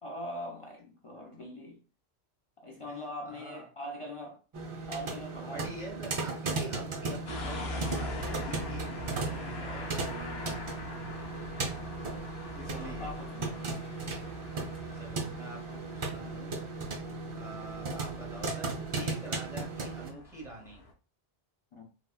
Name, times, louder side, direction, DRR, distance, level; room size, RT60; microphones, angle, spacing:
voice 1, 0.0-1.8 2.6-4.4 4.9-6.2 9.6-10.7 12.7-13.6 21.7-21.8, equal, 55° left, 0.3 m, -42 dB
voice 2, 3.3-3.6 5.5-9.2 12.5-13.1 14.9-16.6 17.3-20.8, right 2 dB, 5° right, 0.9 m, -46 dB
sound 1, 4.5-20.1, right 3 dB, 50° right, 0.4 m, -36 dB
sound 2, 7.3-20.9, left 2 dB, 75° left, 0.8 m, -43 dB
3.6 x 2.0 x 2.3 m
omnidirectional pair, 1.1 m